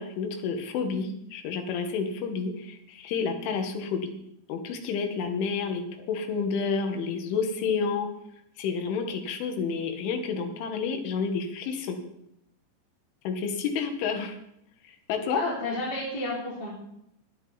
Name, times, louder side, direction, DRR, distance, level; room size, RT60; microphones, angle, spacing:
voice 1, 0.0-4.1 4.5-8.1 8.6-12.0 13.3-14.4 14.8-15.4, left 5 dB, 80° left, 5 dB, 4.0 m, -30 dB
voice 2, 15.3-16.7, left 2 dB, 25° left, -5 dB, 3.5 m, -31 dB
22.5 x 9.0 x 4.1 m, 0.77 s
omnidirectional pair, 5.6 m